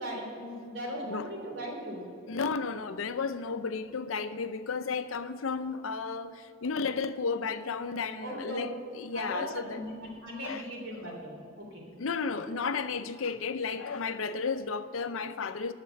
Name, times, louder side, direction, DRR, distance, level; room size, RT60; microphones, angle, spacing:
voice 1, 0.0-2.1 8.2-8.6 9.1-11.9, equal, 65° right, -1 dB, 3.2 m, -38 dB
voice 2, 2.3-9.8 10.4-10.6 11.0-11.2 12.0-15.7, left 5 dB, 85° left, 11 dB, 0.6 m, -33 dB
9.3 x 6.7 x 8.8 m, 2.3 s
head